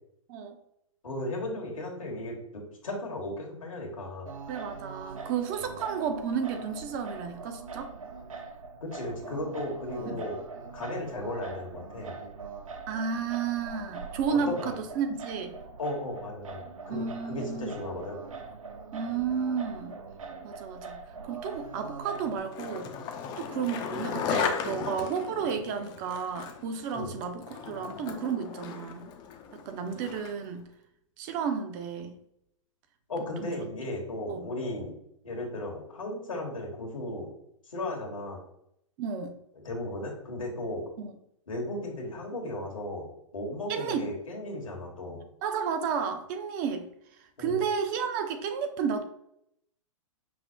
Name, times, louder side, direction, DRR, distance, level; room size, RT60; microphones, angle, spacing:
voice 1, 1.0-4.3 5.6-5.8 8.8-10.4 10.7-12.2 14.3-14.7 15.8-18.2 26.9-27.1 33.1-35.0 35.2-37.3 37.7-38.4 39.6-40.9 41.5-43.1 43.3-45.2 47.4-47.6, left 1 dB, 80° left, 0 dB, 1.4 m, -35 dB
Singing, 4.3-22.4, right 4 dB, 80° right, 0.5 m, -42 dB
voice 2, 4.5-7.9 10.1-10.2 12.9-15.6 16.9-17.8 18.9-20.0 20.4-21.0 21.3-22.9 23.4-29.1 29.5-30.7 31.2-32.2 33.4-33.5 34.3-34.5 39.0-39.3 41.0-41.1 43.7-44.1 45.4-46.9 47.4-49.0, right 6 dB, 35° right, 7 dB, 0.6 m, -32 dB
Skateboard, 22.1-30.5, left 7 dB, 25° left, 0.4 m, -36 dB
5.5 x 2.1 x 2.6 m, 0.75 s
figure-of-eight pair, 115°, 17 cm